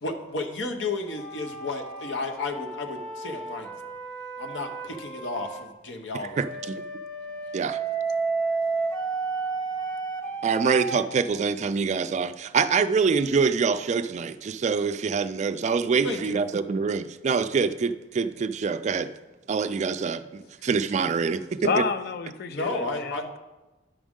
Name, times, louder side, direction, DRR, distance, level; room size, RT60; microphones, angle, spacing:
voice 1, 0.0-3.9 4.4-6.4 16.0-16.4 22.5-23.2, left 2 dB, 80° left, 4 dB, 0.9 m, -33 dB
sound 1, 1.1-5.7 6.3-11.1, right 4 dB, 5° left, 0.8 m, -32 dB
voice 2, 6.4-6.8 7.5-7.8 10.4-19.1 19.5-21.8, right 5 dB, 40° right, 12 dB, 0.3 m, -25 dB
voice 3, 21.6-23.4, left 5 dB, 55° left, 11 dB, 0.5 m, -29 dB
10.0 x 6.2 x 3.6 m, 1.1 s
head